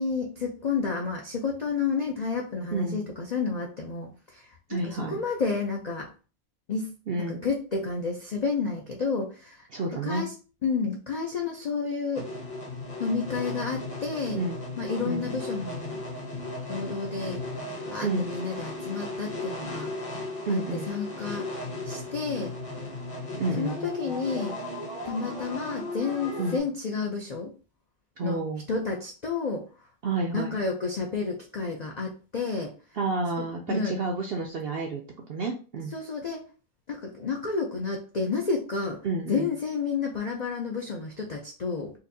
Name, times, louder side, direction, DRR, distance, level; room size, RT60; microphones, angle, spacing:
voice 1, 0.0-6.1 6.7-6.9 7.2-10.3 10.6-12.3 13.0-14.4 14.8-16.0 16.7-17.4 17.9-19.9 20.5-20.6 20.9-21.5 21.8-22.5 23.6-24.6 25.0-27.5 28.2-28.4 28.7-29.7 30.3-32.7 33.4-34.0 35.9-36.4 36.9-39.0 39.3-41.9, left 4 dB, 70° left, 0 dB, 0.4 m, -30 dB
voice 2, 2.7-3.1 4.7-5.2 7.1-7.4 9.7-10.3 14.3-14.6 15.1-15.3 18.0-18.3 20.5-20.9 23.4-23.8 26.4-26.6 28.2-28.6 30.0-30.6 32.9-35.0 35.3-35.9 39.0-39.5, right 3 dB, 70° right, 1 dB, 0.5 m, -30 dB
sound 1, 12.1-26.6, left 2 dB, 30° left, 0.7 m, -36 dB
4.1 x 2.5 x 2.6 m, 0.36 s
omnidirectional pair, 1.5 m